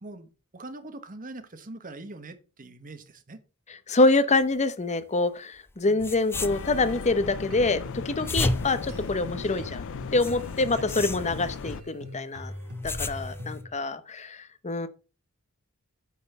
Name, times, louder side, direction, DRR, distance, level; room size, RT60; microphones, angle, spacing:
voice 1, 0.0-3.4 5.8-6.0 10.7-10.9, right 2 dB, 40° right, 1.2 m, -43 dB
voice 2, 3.9-7.8 8.0-9.8 10.1-12.5 12.8-14.9, left 2 dB, 30° left, 0.8 m, -25 dB
sound 1, 5.7-5.8 6.0-7.1 8.0-9.7 10.2-11.8 12.5-13.6, left 2 dB, 10° left, 0.4 m, -33 dB
sound 2, 6.3-11.8, left 5 dB, 60° left, 0.5 m, -37 dB
sound 3, 7.2-13.7, left 1 dB, 80° right, 2.1 m, -42 dB
9.3 x 4.3 x 6.7 m
head